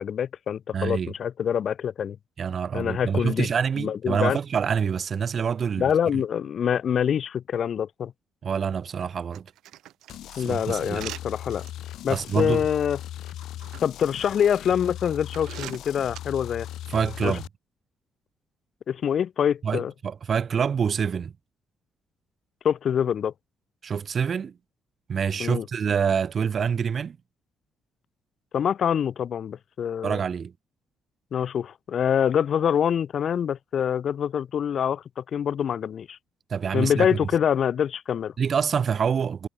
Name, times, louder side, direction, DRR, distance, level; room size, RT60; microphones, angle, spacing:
voice 1, 0.0-2.2 2.7-3.5 3.8-4.4 5.8-8.1 10.4-11.7 12.0-13.0 13.8-16.7 17.2-17.4 18.9-19.9 22.6-23.3 25.4-25.7 28.5-30.2 31.3-36.2 36.7-38.3, left 8 dB, 60° left, 2.9 m, -25 dB
voice 2, 0.7-1.1 2.4-5.9 8.4-9.4 10.4-11.0 12.1-12.6 16.9-17.4 19.6-21.3 23.8-24.5 25.1-27.2 30.0-30.5 36.5-37.1 38.4-39.5, right 7 dB, 50° right, 1.4 m, -26 dB
sound 1, 9.3-11.7 12.2-12.4 13.3-13.8 14.5-14.6 15.3-16.2, right 14 dB, 85° right, 5.8 m, -41 dB
sound 2, 10.1-17.5, left 13 dB, 80° left, 5.8 m, -38 dB
cardioid pair, 90°, 0 cm